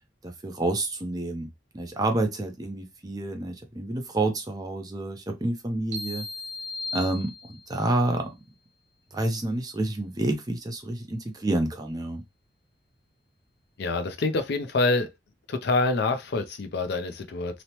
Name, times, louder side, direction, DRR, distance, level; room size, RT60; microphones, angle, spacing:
voice 1, 0.2-1.5 1.7-6.3 6.9-8.4 9.1-12.2, right 2 dB, 20° right, 0.5 m, -29 dB
sound 1, 5.9-7.9, left 3 dB, 75° right, 1.0 m, -36 dB
voice 2, 13.8-15.1 15.5-17.6, left 3 dB, 55° left, 0.4 m, -26 dB
3.0 x 2.0 x 2.8 m
head